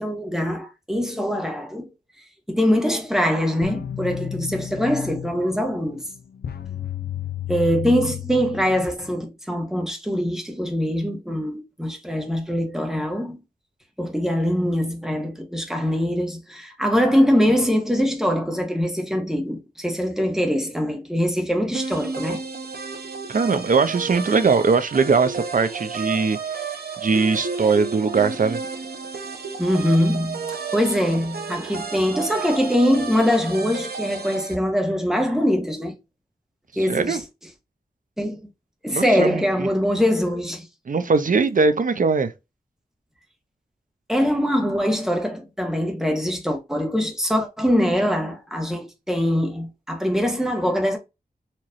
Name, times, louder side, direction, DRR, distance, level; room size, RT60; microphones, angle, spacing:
voice 1, 0.0-1.9 2.5-6.0 7.5-13.4 14.0-22.4 29.6-35.9 36.8-37.2 38.2-38.4 38.8-40.7 44.1-51.0, equal, 5° right, 1.3 m, -23 dB
sound 1, 3.6-9.2, left 10 dB, 90° left, 0.5 m, -32 dB
sound 2, 21.7-34.5, right 5 dB, 85° right, 0.8 m, -32 dB
voice 2, 23.3-26.4 27.0-28.6 36.8-37.2 38.9-39.7 40.9-42.3, right 4 dB, 60° right, 0.6 m, -20 dB
4.4 x 3.0 x 2.5 m
wide cardioid pair, 75°, 16 cm